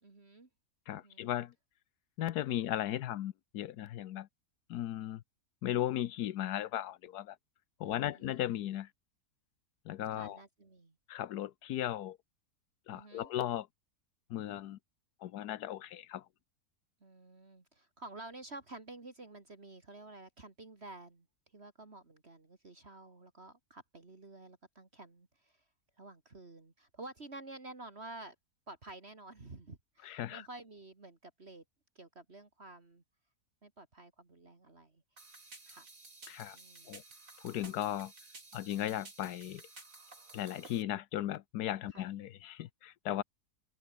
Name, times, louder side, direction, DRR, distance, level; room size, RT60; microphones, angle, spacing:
voice 1, 0.0-0.5 0.9-1.3 7.8-8.4 10.1-10.9 12.9-13.3 17.0-21.3 21.5-25.6 26.0-28.4 28.7-31.6 32.0-33.0 33.6-35.0 35.7-35.9 36.5-37.0 41.9-42.1, right 2 dB, 40° right, 2.7 m, -51 dB
voice 2, 0.9-1.5 2.2-4.3 4.7-5.2 5.6-7.4 7.8-8.9 9.9-10.4 11.1-12.2 12.9-13.7 14.3-14.8 15.2-16.2 30.0-30.5 36.3-36.6 36.9-37.0 37.4-38.1 38.5-39.6 40.3-43.2, left 12 dB, 85° left, 1.3 m, -36 dB
sound 1, 35.2-40.8, right 3 dB, 55° right, 4.4 m, -54 dB
omnidirectional pair, 1.6 m